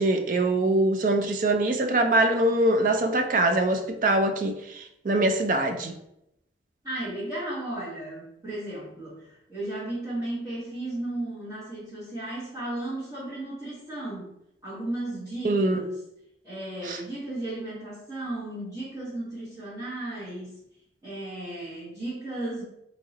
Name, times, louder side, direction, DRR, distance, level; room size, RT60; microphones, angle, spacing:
voice 1, 0.0-5.9 15.4-15.8 16.8-17.0, right 2 dB, 45° right, 5 dB, 0.4 m, -23 dB
voice 2, 6.8-14.3 14.6-16.0 16.4-20.6 21.0-22.6, right 1 dB, 20° right, -12 dB, 1.3 m, -35 dB
3.0 x 2.8 x 3.9 m, 0.81 s
head